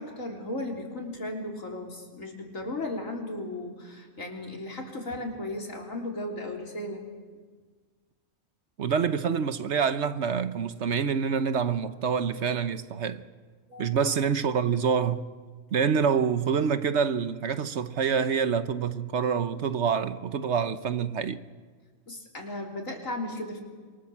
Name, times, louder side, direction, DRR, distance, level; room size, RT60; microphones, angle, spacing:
voice 1, 0.0-7.0 13.7-14.1 22.1-23.6, left 1 dB, 80° left, 4.1 m, -36 dB
voice 2, 8.8-13.2 13.8-15.2 15.7-21.4, right 6 dB, 60° right, 1.2 m, -26 dB
26.5 x 24.0 x 7.4 m
omnidirectional pair, 1.4 m